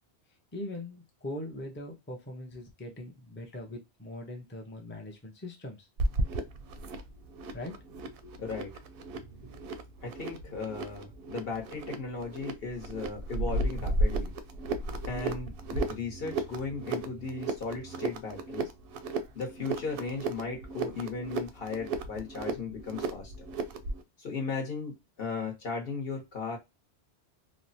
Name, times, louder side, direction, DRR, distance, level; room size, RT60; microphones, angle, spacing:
voice 1, 0.5-5.9 7.5-8.4 9.1-9.4, left 1 dB, 15° left, 0.5 m, -41 dB
sound 1, 6.0-24.0, right 2 dB, 65° right, 0.7 m, -34 dB
voice 2, 8.4-8.7 10.0-14.3 15.0-18.7 19.3-23.5 24.2-26.6, left 4 dB, 60° left, 1.2 m, -36 dB
3.1 x 2.0 x 2.6 m
omnidirectional pair, 1.1 m